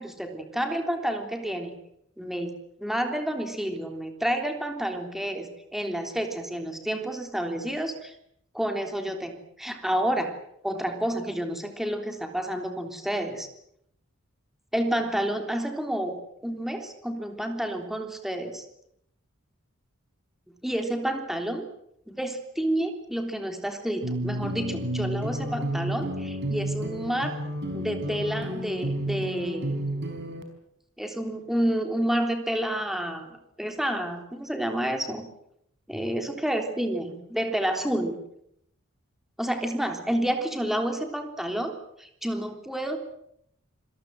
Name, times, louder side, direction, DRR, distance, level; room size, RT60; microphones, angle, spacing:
voice 1, 0.0-1.8 2.2-2.5 2.8-8.2 8.5-10.3 10.6-13.5 14.7-18.7 20.6-21.6 22.1-27.3 27.7-29.8 31.0-33.3 33.6-35.3 35.9-38.2 39.4-41.7 42.0-43.0, right 1 dB, ahead, 5 dB, 3.5 m, -29 dB
sound 1, 24.0-30.4, right 1 dB, 55° right, 4.8 m, -31 dB
27.0 x 21.5 x 7.8 m, 0.75 s
head